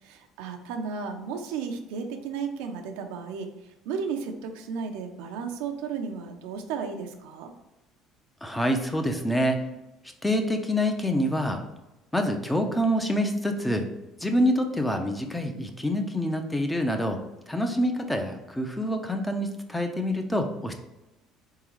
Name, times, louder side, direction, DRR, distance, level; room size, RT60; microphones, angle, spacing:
voice 1, 0.0-3.5 3.8-7.5, right 5 dB, 85° right, 5 dB, 0.6 m, -34 dB
voice 2, 8.4-9.6 10.2-11.6 12.1-13.8 14.2-17.2 17.5-20.8, equal, 10° left, 5 dB, 0.6 m, -26 dB
3.9 x 3.7 x 3.1 m, 1.0 s
cardioid pair, 110°, 0 cm